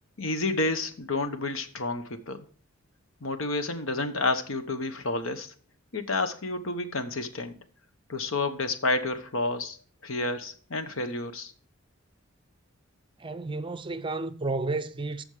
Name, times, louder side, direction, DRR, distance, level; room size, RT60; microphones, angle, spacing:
voice 1, 0.2-2.4 3.2-5.5 5.9-7.5 8.1-9.8 10.0-11.5, left 2 dB, 70° left, 1.1 m, -30 dB
voice 2, 13.2-15.2, right 3 dB, 25° right, 0.5 m, -32 dB
14.5 x 5.2 x 4.9 m
head